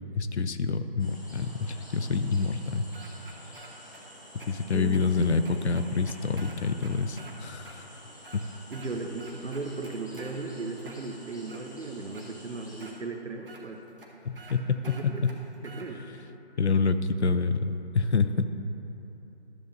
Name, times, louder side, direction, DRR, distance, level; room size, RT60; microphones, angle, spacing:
voice 1, 0.1-2.8 4.3-7.9 8.3-8.4 14.3-15.3 16.6-18.5, left 4 dB, 70° left, 10 dB, 0.5 m, -27 dB
sound 1, 1.0-12.9, equal, 15° left, 0.7 m, -50 dB
sound 2, 2.9-4.0 4.4-4.5 4.9-5.0 5.4-7.3 7.6-7.8 8.1-8.9 9.2-10.4 10.8-11.6 12.1-12.3 12.8-12.9 13.5-13.6 14.0-14.1 14.4-14.6 14.8-15.9, right 3 dB, 50° right, 1.1 m, -49 dB
voice 2, 4.6-5.4 8.7-13.8 14.8-15.3 15.6-16.0, right 3 dB, 80° right, 4 dB, 0.9 m, -37 dB
12.5 x 7.4 x 2.7 m, 3.0 s
figure-of-eight pair, 155°, 35 cm